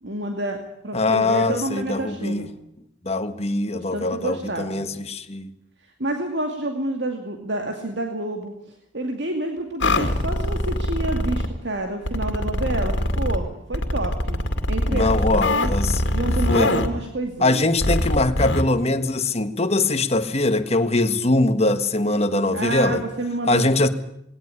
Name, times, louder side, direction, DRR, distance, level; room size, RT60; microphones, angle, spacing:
voice 1, 0.0-2.5 3.7-4.9 6.0-8.5 8.9-15.7 16.0-17.7 22.5-23.9, right 2 dB, 65° right, 4 dB, 2.4 m, -29 dB
voice 2, 0.9-2.5 3.0-5.5 14.9-16.0 16.5-16.7 17.4-23.0 23.5-23.9, left 2 dB, 35° left, 9 dB, 1.5 m, -22 dB
sound 1, 9.8-11.5 12.1-13.4 13.7-16.9 17.8-18.6, left 1 dB, 80° left, 2.3 m, -23 dB
19.0 x 18.5 x 9.9 m, 0.74 s
head